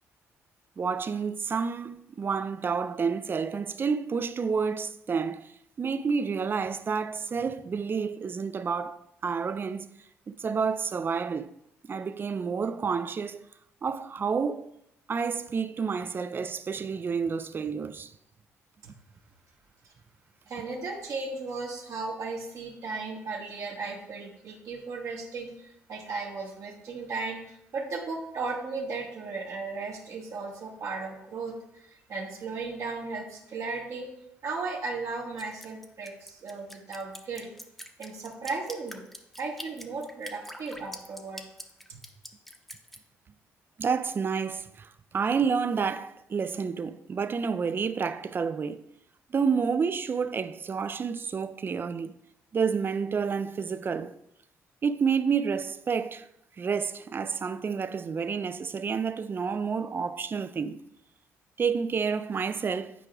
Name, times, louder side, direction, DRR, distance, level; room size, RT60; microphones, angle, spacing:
voice 1, 0.8-5.5 5.8-9.9 10.3-11.5 11.9-13.4 13.8-14.7 15.1-18.1 43.8-48.8 49.3-52.2 52.5-54.1 54.8-56.3 56.6-60.8 61.6-62.9, right 5 dB, 40° right, 0.4 m, -29 dB
voice 2, 20.5-34.1 34.4-37.5 38.0-39.0 39.4-41.4 41.9-42.0, right 3 dB, 60° right, 1.3 m, -36 dB
Drip, 35.4-43.0, equal, 5° left, 0.8 m, -44 dB
9.1 x 4.7 x 2.3 m
supercardioid pair, 60°, 6 cm